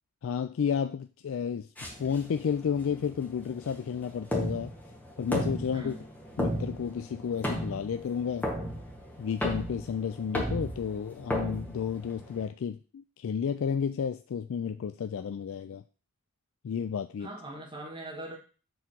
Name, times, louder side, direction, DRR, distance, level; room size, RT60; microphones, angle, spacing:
voice 1, 0.2-4.7 5.2-6.0 6.4-8.5 9.2-15.8 16.6-17.3, left 7 dB, 60° left, 0.3 m, -32 dB
sound 1, 1.8-12.4, equal, 10° left, 1.5 m, -35 dB
voice 2, 5.7-6.1 17.2-18.4, right 1 dB, 20° right, 1.7 m, -41 dB
7.1 x 3.7 x 6.0 m
head